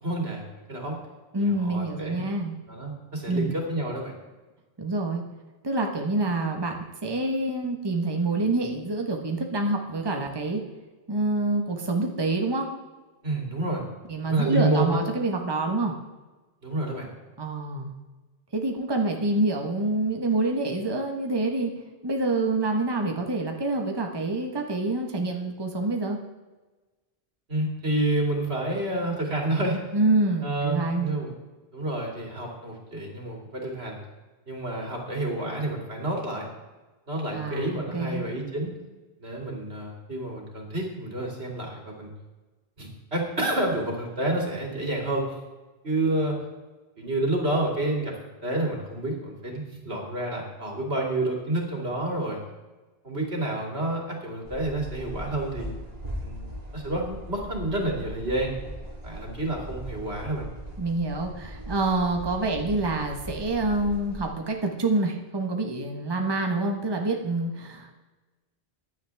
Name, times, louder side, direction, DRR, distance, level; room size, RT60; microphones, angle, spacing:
voice 1, 0.0-0.4 0.7-1.0 1.6-2.2 2.7-4.1 13.2-13.8 14.2-15.0 16.6-17.1 27.5-29.8 30.4-31.3 31.7-34.0 34.5-36.5 37.1-38.7 39.2-42.1 42.8-45.3 45.8-46.4 47.0-48.1 48.4-52.4 53.0-55.7 56.2-58.5 59.0-60.5, right 2 dB, 85° right, 0 dB, 3.0 m, -29 dB
voice 2, 1.3-2.5 3.3-3.6 4.8-5.2 5.6-10.6 11.1-12.7 14.1-15.9 17.4-17.9 18.5-21.7 22.0-26.2 29.9-31.1 37.3-38.2 60.8-68.0, right 2 dB, 25° right, 2 dB, 1.3 m, -27 dB
sound 1, 54.4-64.3, equal, 40° right, 2.1 m, -39 dB
15.5 x 10.5 x 3.5 m, 1.2 s
omnidirectional pair, 1.0 m